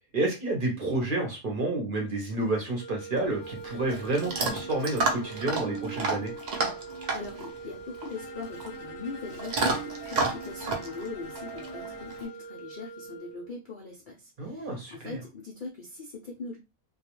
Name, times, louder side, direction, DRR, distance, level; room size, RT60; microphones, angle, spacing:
voice 1, 0.1-6.3 14.4-15.2, right 2 dB, 50° right, 1 dB, 0.7 m, -30 dB
sound 1, 2.7-13.6, right 4 dB, 5° right, 0.9 m, -43 dB
Chewing mastication / Dog, 3.1-12.2, right 3 dB, 85° right, 0.3 m, -32 dB
voice 2, 7.1-16.6, left 4 dB, 85° left, -2 dB, 0.4 m, -41 dB
Bowed string instrument, 8.1-12.4, left 5 dB, 65° left, 0.8 m, -47 dB
2.2 x 2.2 x 2.9 m, 0.26 s
omnidirectional pair, 1.5 m